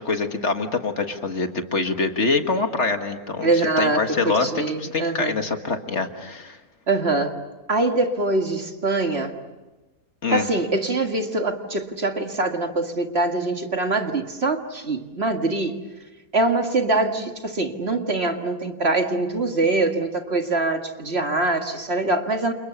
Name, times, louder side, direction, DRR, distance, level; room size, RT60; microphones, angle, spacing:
voice 1, 0.0-4.5 4.8-6.6 10.2-10.5, left 3 dB, 50° left, 6 dB, 1.9 m, -25 dB
voice 2, 3.4-5.4 6.9-7.4 7.7-9.4 10.3-15.8 16.3-22.5, right 2 dB, 45° right, 4 dB, 2.1 m, -23 dB
29.5 x 29.0 x 6.9 m, 1.1 s
omnidirectional pair, 1.5 m